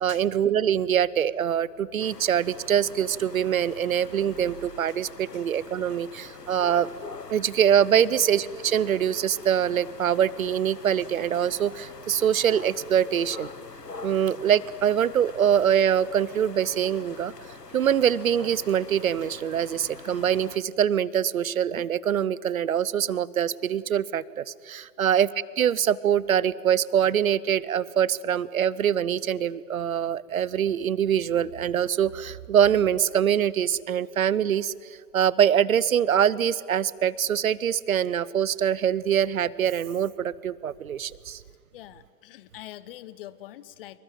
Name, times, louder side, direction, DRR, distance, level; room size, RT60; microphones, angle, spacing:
voice 1, 0.0-6.9 7.3-13.5 14.0-17.3 17.7-25.3 25.6-34.7 35.1-41.4, right 9 dB, 60° right, 21 dB, 0.9 m, -24 dB
sound 1, 2.0-20.6, left 4 dB, 85° left, 1.6 m, -44 dB
voice 2, 41.7-44.0, left 14 dB, 35° left, 16 dB, 1.2 m, -44 dB
27.0 x 23.0 x 9.0 m, 2.2 s
figure-of-eight pair, 115°, 47 cm